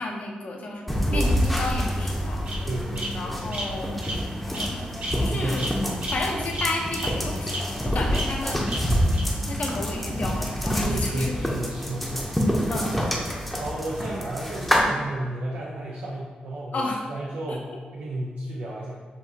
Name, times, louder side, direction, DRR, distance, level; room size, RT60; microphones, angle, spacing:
voice 1, 0.0-2.4 3.1-4.1 4.5-5.7 6.1-8.7 9.5-11.3 12.7-13.1 16.7-17.0 17.5-17.6, left 2 dB, 55° left, 0 dB, 0.8 m, -32 dB
sound 1, 0.9-14.8, equal, 5° left, 0.7 m, -27 dB
Bird vocalization bird call bird song, 1.0-1.8 2.5-2.6 3.0-3.1 3.5-3.6 4.0-4.2 4.5-4.7 5.0-5.1 5.6-5.7 6.0-6.1 6.5-6.6 7.0-7.1 7.5-7.6 8.1-8.2 8.7-8.8 9.1-9.2, right 1 dB, 65° right, 1.3 m, -31 dB
voice 2, 2.7-3.6 5.2-6.1 7.8-8.1 10.8-12.3 13.0-13.2 13.6-19.1, right 1 dB, 90° right, -4 dB, 0.6 m, -33 dB
6.9 x 2.6 x 2.8 m, 1.5 s
cardioid pair, 95°, 3 cm